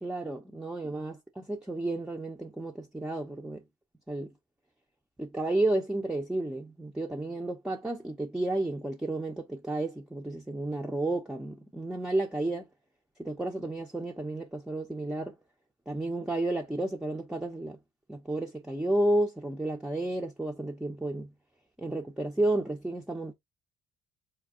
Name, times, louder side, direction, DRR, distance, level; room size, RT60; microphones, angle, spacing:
voice 1, 0.0-3.6 4.1-4.3 5.2-12.7 13.2-15.4 15.9-17.8 18.1-21.3 21.8-23.3, right 1 dB, 5° right, 0.6 m, -32 dB
4.4 x 2.3 x 3.6 m
cardioid pair, 110°, 17 cm